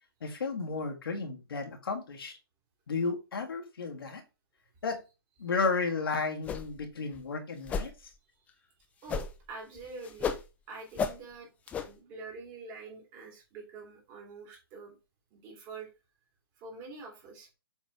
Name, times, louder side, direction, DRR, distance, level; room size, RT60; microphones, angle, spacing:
voice 1, 0.2-2.3 2.9-4.2 4.8-5.0 5.4-7.9, left 4 dB, 65° left, 3 dB, 1.9 m, -33 dB
sound 1, 6.4-6.9 7.1-7.2 7.7-7.9 9.1-9.5 9.8-10.5 11.0-11.2 11.7-11.9, left 6 dB, 10° left, 0.4 m, -33 dB
voice 2, 9.0-10.4 10.7-11.5 11.8-15.0 15.3-15.9 16.6-17.5, right 3 dB, 30° right, 0 dB, 3.0 m, -45 dB
7.2 x 3.9 x 3.4 m, 0.28 s
figure-of-eight pair, 130°, 13 cm